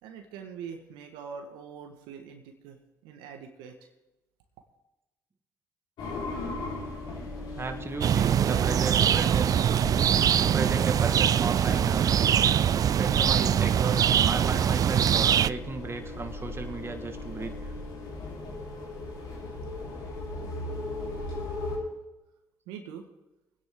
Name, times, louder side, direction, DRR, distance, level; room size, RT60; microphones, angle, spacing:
voice 1, 0.0-3.9 22.7-23.1, right 6 dB, 80° right, 4 dB, 1.5 m, -44 dB
sound 1, 6.0-21.8, left 2 dB, 65° left, 3.9 m, -38 dB
voice 2, 7.6-9.7 10.4-12.2 13.0-17.7, right 3 dB, 30° right, 6 dB, 1.7 m, -35 dB
sound 2, 8.0-15.5, right 9 dB, 50° right, 0.4 m, -23 dB
22.0 x 9.8 x 3.7 m, 0.99 s
hypercardioid pair, 55°, 8 cm